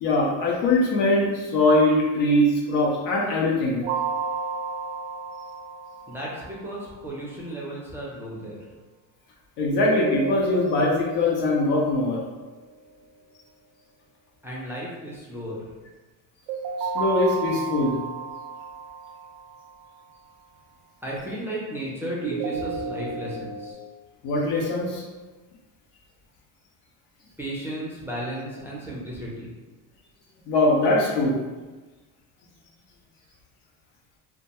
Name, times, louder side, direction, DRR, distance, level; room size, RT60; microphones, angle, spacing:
voice 1, 0.0-3.8 9.6-12.2 16.8-18.0 24.2-25.0 30.5-31.4, left 2 dB, 75° left, -2 dB, 0.8 m, -22 dB
sound 1, 3.8-6.8 9.7-12.8 16.5-19.7 22.2-23.7, right 5 dB, 90° right, 0.5 m, -32 dB
voice 2, 6.1-8.6 14.4-15.6 21.0-23.8 27.4-29.5, right 1 dB, 5° right, -6 dB, 0.4 m, -34 dB
2.3 x 2.2 x 2.8 m, 1.2 s
supercardioid pair, 110°, 41 cm